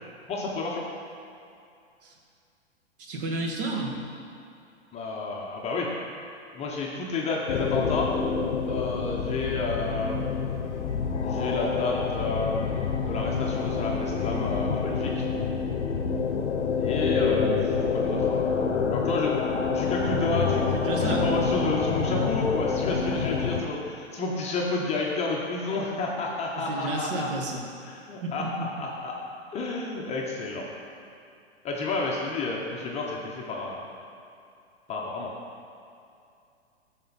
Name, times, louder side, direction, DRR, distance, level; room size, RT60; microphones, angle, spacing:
voice 1, 0.3-0.8 4.9-5.9 6.5-8.1 8.7-10.2 11.2-15.2 16.8-19.4 19.7-20.7 21.0-27.3 27.8-29.2 29.5-30.7 31.6-33.9 34.9-35.3, left 3 dB, 20° left, -2 dB, 0.8 m, -31 dB
voice 2, 3.0-4.0 20.7-21.4 26.5-27.7 28.2-28.5, right 2 dB, 50° right, 1 dB, 1.5 m, -31 dB
sound 1, 7.5-23.6, left 5 dB, 80° left, 0.8 m, -27 dB
12.0 x 4.4 x 4.0 m, 2.5 s
hypercardioid pair, 125°, 34 cm